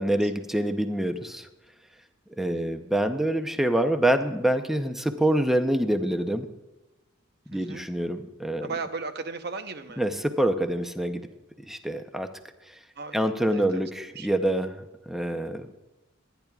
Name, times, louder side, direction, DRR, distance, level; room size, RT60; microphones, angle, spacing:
voice 1, 0.0-1.5 2.4-6.5 7.5-8.7 10.0-11.3 11.7-12.3 13.1-15.7, right 1 dB, ahead, 7 dB, 0.6 m, -26 dB
voice 2, 7.5-7.9 8.6-10.0 13.0-13.9 14.1-14.3, right 4 dB, 55° right, 8 dB, 0.8 m, -36 dB
23.0 x 10.5 x 2.4 m, 1.0 s
head